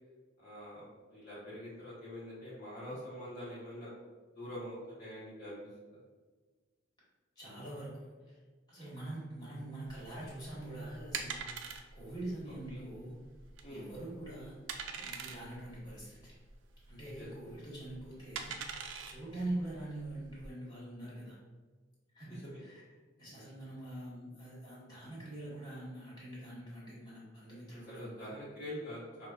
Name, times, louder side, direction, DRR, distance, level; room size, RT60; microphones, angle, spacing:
voice 1, 0.4-3.9 4.3-6.0 12.7-12.8 13.6-13.8 17.2-17.3 22.3-22.6 27.9-29.3, equal, 45° left, -10 dB, 0.9 m, -45 dB
voice 2, 7.3-8.4 8.7-11.4 11.9-13.1 13.7-14.5 14.9-16.3 16.9-18.5 19.1-21.4 22.1-22.8 23.2-28.3, right 1 dB, 20° left, -7 dB, 1.3 m, -44 dB
sound 1, 9.9-20.5, right 6 dB, 85° right, 0.4 m, -44 dB
4.8 x 2.2 x 2.3 m, 1.4 s
head